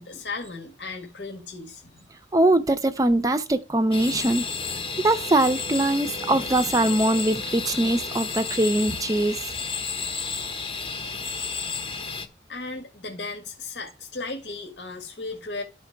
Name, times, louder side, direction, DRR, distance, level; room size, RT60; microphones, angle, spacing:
voice 1, 0.0-2.1 12.5-15.6, left 3 dB, 85° left, 1.7 m, -36 dB
voice 2, 2.3-4.4 5.0-9.4, right 1 dB, 20° right, 0.4 m, -22 dB
sound 1, 3.9-12.3, left 5 dB, 30° left, 0.8 m, -32 dB
12.5 x 4.4 x 4.5 m
head